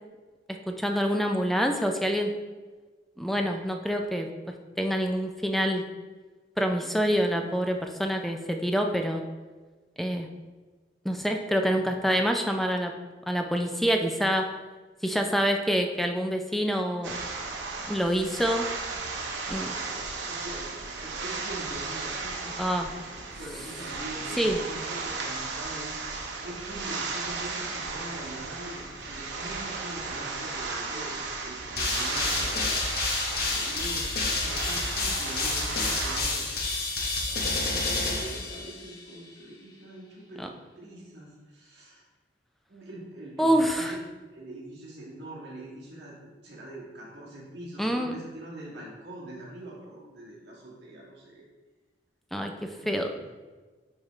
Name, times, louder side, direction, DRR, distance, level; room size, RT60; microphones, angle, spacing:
voice 1, 0.7-2.3 3.2-4.3 4.8-5.8 6.6-9.2 10.0-10.3 11.0-12.9 13.3-14.5 15.0-17.2 17.9-18.7 19.5-19.8 22.6-22.9 24.4-24.6 40.4-40.5 43.4-44.0 47.8-48.2 52.3-53.1, equal, ahead, 4 dB, 0.4 m, -26 dB
sound 1, 17.0-36.2, right 4 dB, 85° right, 0.9 m, -35 dB
voice 2, 20.1-25.9 26.4-32.6 33.5-36.5 37.3-42.0 42.7-44.0 44.3-51.5 52.7-53.3, right 1 dB, 70° right, -5 dB, 1.8 m, -43 dB
sound 2, 31.8-39.0, left 3 dB, 55° left, 1.1 m, -29 dB
9.7 x 3.5 x 3.2 m, 1.3 s
head